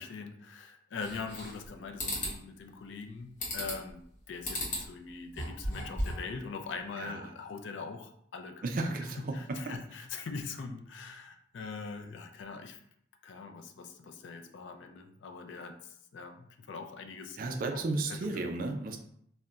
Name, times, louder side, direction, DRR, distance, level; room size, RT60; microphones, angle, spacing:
voice 1, 0.0-8.6 9.3-12.8 13.2-18.4, left 4 dB, 70° left, 5 dB, 0.3 m, -42 dB
sound 1, 1.0-1.7 2.0-2.4 3.4-3.9 4.4-4.9 5.3-6.3, left 1 dB, 40° left, 0.9 m, -35 dB
voice 2, 8.6-9.8 17.4-19.0, right 2 dB, 45° right, 4 dB, 0.3 m, -34 dB
2.3 x 2.1 x 3.8 m, 0.68 s
head